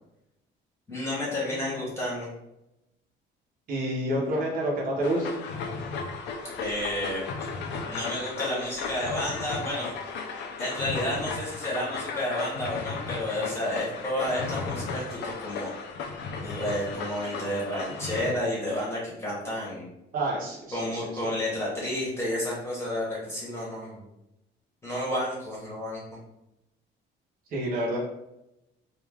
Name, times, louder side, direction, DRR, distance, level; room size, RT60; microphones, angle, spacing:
voice 1, 0.9-2.3 6.6-7.3 7.8-9.9 10.6-15.7 16.4-19.9 20.7-24.0 24.8-26.0, left 1 dB, 15° left, -6 dB, 0.9 m, -31 dB
voice 2, 1.5-1.8 3.7-5.3 20.1-21.3 27.5-28.0, right 1 dB, 45° right, -4 dB, 0.8 m, -29 dB
sound 1, 5.0-18.3, left 4 dB, 60° left, 0.4 m, -35 dB
2.4 x 2.3 x 3.2 m, 0.89 s
cardioid pair, 180°, 20 cm